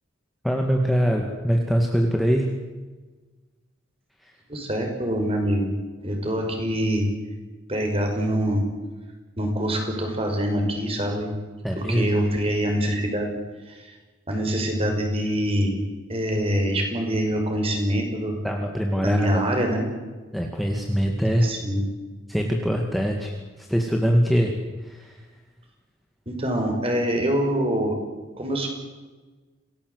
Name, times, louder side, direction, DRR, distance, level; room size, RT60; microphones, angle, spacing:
voice 1, 0.4-2.5 11.6-12.1 18.4-19.4 20.3-21.5 22.3-24.5 24.8-25.2, equal, ahead, 1 dB, 2.2 m, -23 dB
voice 2, 4.5-5.7 6.0-7.1 7.7-8.6 9.4-11.3 11.8-13.3 13.7-13.9 14.3-15.8 16.1-18.4 19.0-19.8 21.4-21.8 26.3-27.9 28.4-28.7, equal, 30° right, 3 dB, 5.6 m, -24 dB
27.5 x 19.0 x 8.2 m, 1.3 s
head